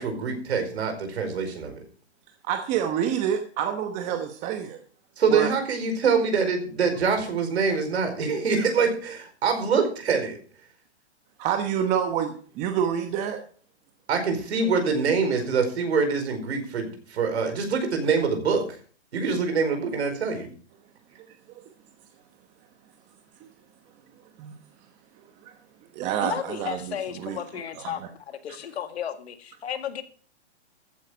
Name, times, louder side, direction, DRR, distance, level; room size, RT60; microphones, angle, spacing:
voice 1, 0.0-1.8 5.2-10.4 14.1-18.6 19.1-20.5, right 5 dB, 65° right, 6 dB, 4.9 m, -25 dB
voice 2, 2.5-4.8 5.3-5.5 11.4-13.4 21.1-21.2 24.4-24.5 25.4-25.5 25.9-26.8 27.2-27.4 27.8-27.9, right 9 dB, 20° right, 6 dB, 1.0 m, -27 dB
voice 3, 26.2-30.0, left 9 dB, 65° left, 8 dB, 2.0 m, -34 dB
14.5 x 9.2 x 5.0 m, 0.43 s
hypercardioid pair, 150°, 35 cm